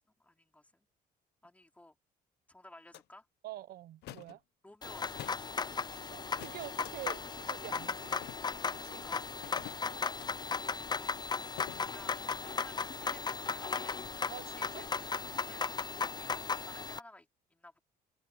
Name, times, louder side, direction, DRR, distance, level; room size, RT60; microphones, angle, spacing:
voice 1, 0.2-0.8 1.4-2.0 2.5-3.3 4.6-5.6 8.8-9.3 10.9-11.2 11.5-14.0 14.4-17.8, left 1 dB, 10° left, 3.2 m, -56 dB
sound 1, 2.9-3.0 4.0-4.4 5.1-5.5 6.4-6.9 8.1-8.6 9.4-10.3 11.6-11.9, left 15 dB, 80° left, 1.1 m, -48 dB
voice 2, 3.4-4.4 6.1-8.1 8.6-9.0 14.3-14.8, right 14 dB, 65° right, 0.9 m, -46 dB
sound 2, 4.8-17.0, left 5 dB, 25° left, 0.7 m, -36 dB
sound 3, 6.9-7.6 7.9-13.0, left 10 dB, 55° left, 4.9 m, -68 dB
open air
cardioid pair, 110°, 17 cm